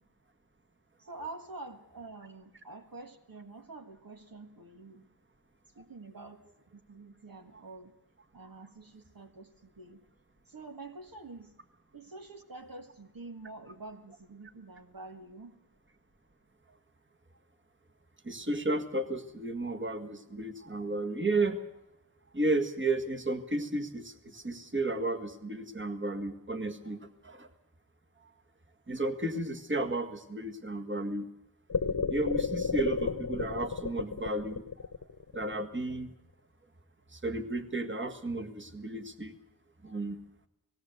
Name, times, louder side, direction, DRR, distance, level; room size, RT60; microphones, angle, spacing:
voice 1, 1.0-5.1 5.7-6.5 6.7-8.0 8.3-10.0 10.4-11.6 11.9-15.5, right 3 dB, 65° right, 5 dB, 1.7 m, -47 dB
voice 2, 18.2-21.6 22.3-27.5 28.9-31.3 32.1-34.9 35.3-36.1 37.1-39.4 39.8-40.2, right 2 dB, 30° right, 8 dB, 1.8 m, -33 dB
sound 1, 31.7-35.9, left 5 dB, 55° left, 1.2 m, -32 dB
19.0 x 17.0 x 7.9 m, 0.88 s
wide cardioid pair, 65°, 38 cm